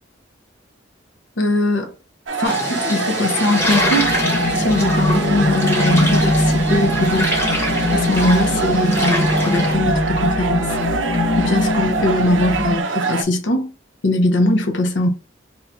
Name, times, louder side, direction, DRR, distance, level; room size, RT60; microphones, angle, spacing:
voice 1, 1.4-1.9 2.4-4.2 4.6-7.4 7.9-10.8 11.4-13.7 14.0-15.1, left 1 dB, 70° left, 0.7 m, -20 dB
sound 1, 2.3-13.2, right 3 dB, 75° right, 0.5 m, -24 dB
sound 2, 2.4-9.7, left 1 dB, 15° left, 0.9 m, -25 dB
sound 3, 3.6-12.8, left 1 dB, 40° left, 0.4 m, -22 dB
2.7 x 2.3 x 4.2 m
head